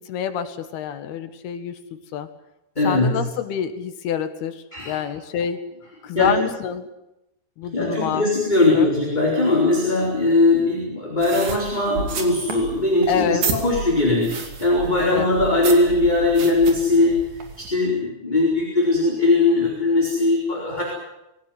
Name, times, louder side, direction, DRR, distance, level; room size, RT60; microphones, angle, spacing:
voice 1, 0.0-2.3 2.8-5.6 6.0-6.9 7.6-8.3 8.7-8.9 13.1-13.4 15.0-15.3, left 8 dB, 80° left, 9 dB, 3.6 m, -27 dB
voice 2, 2.8-3.2 4.7-5.0 6.1-6.3 7.7-17.2 17.6-20.8, left 2 dB, 10° left, -3 dB, 4.6 m, -20 dB
sound 1, 11.2-17.7, right 5 dB, 55° right, 4.1 m, -32 dB
22.5 x 17.5 x 9.6 m, 0.92 s
omnidirectional pair, 4.4 m